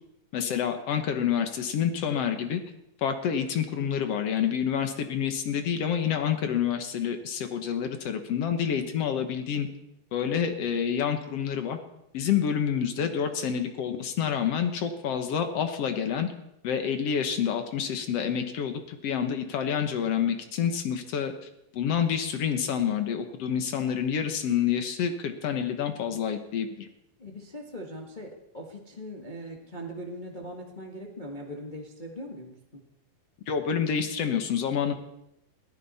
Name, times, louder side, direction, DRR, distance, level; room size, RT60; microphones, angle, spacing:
voice 1, 0.3-2.6 3.0-9.7 10.1-11.8 12.1-16.3 16.6-21.3 21.7-26.9 33.5-34.9, left 8 dB, 60° left, 7 dB, 1.9 m, -28 dB
voice 2, 27.2-32.8, equal, 90° left, 0 dB, 0.4 m, -41 dB
21.5 x 14.5 x 4.2 m, 0.83 s
omnidirectional pair, 4.0 m